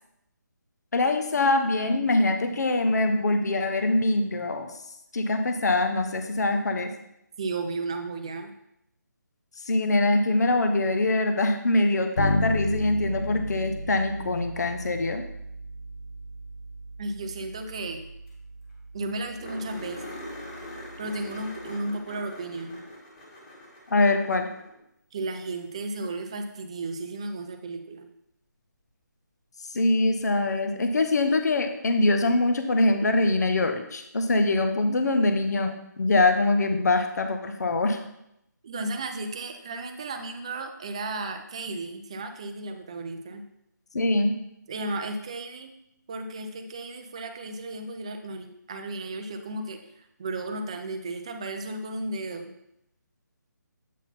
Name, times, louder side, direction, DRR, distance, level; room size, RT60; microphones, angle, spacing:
voice 1, 0.9-4.7 5.1-6.9 9.7-15.2 23.9-24.5 29.7-38.0 43.9-44.3, left 2 dB, 60° left, 6 dB, 0.8 m, -23 dB
voice 2, 7.4-8.5 17.0-18.1 18.9-20.2 21.0-22.8 25.1-28.1 38.6-43.4 44.7-45.7 46.1-52.5, right 2 dB, 20° right, 5 dB, 0.4 m, -34 dB
Bass guitar, 12.2-21.8, equal, 80° left, 1.3 m, -35 dB
sound 1, 18.0-18.1 18.3-18.4 18.7-18.8 19.4-24.8 27.1-27.2 30.1-30.2, left 1 dB, 20° left, 1.7 m, -42 dB
8.2 x 4.0 x 4.1 m, 0.80 s
hypercardioid pair, 170°, 10 cm